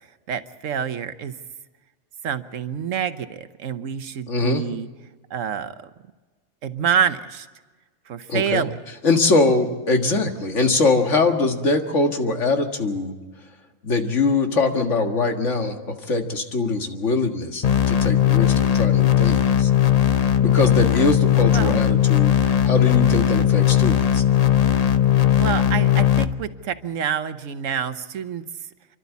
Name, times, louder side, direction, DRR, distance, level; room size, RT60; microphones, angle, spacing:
voice 1, 0.3-1.3 2.2-4.9 5.3-5.9 6.6-7.5 8.1-8.7 21.5-21.8 25.2-28.4, right 8 dB, 75° right, 12 dB, 1.3 m, -27 dB
voice 2, 4.3-4.6 8.3-8.7 9.0-13.2 13.8-15.8 16.1-19.7 20.4-24.2, left 3 dB, 65° left, 4 dB, 2.1 m, -22 dB
sound 1, 17.6-26.3, left 10 dB, 40° left, 0.6 m, -18 dB
29.0 x 12.0 x 8.3 m, 1.3 s
omnidirectional pair, 1.3 m